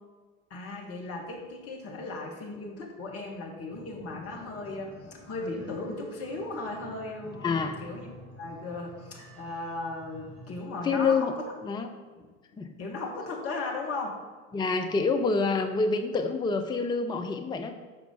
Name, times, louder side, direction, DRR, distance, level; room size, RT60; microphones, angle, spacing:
voice 1, 0.5-11.4 12.2-14.2 14.5-14.7, left 2 dB, 35° left, 0 dB, 1.9 m, -37 dB
sound 1, 3.7-10.6, equal, 60° right, 2.6 m, -49 dB
voice 2, 7.4-7.8 10.8-11.3 11.6-11.9 12.6-12.7 14.5-17.7, left 4 dB, 10° left, 6 dB, 0.6 m, -27 dB
13.0 x 4.8 x 3.9 m, 1.4 s
figure-of-eight pair, 70°, 40 cm